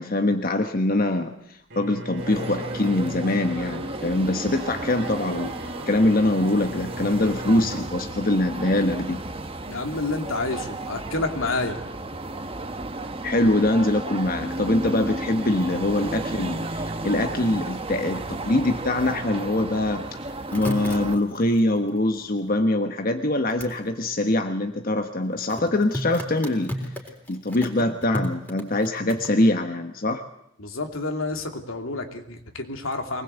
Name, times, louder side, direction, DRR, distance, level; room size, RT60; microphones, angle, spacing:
voice 1, 0.0-9.2 13.2-20.2 20.5-26.7 27.3-30.2, left 1 dB, 45° left, 6 dB, 1.2 m, -23 dB
Bowed string instrument, 1.7-8.0, equal, 60° right, 2.6 m, -38 dB
sound 1, 2.2-21.2, right 2 dB, 25° right, 1.3 m, -33 dB
voice 2, 9.7-11.8 30.6-33.2, left 2 dB, 85° left, 4 dB, 2.8 m, -29 dB
sound 2, 20.2-22.6 23.5-23.8 25.4-29.3, equal, 5° left, 3.8 m, -34 dB
24.0 x 20.0 x 8.2 m, 0.74 s
head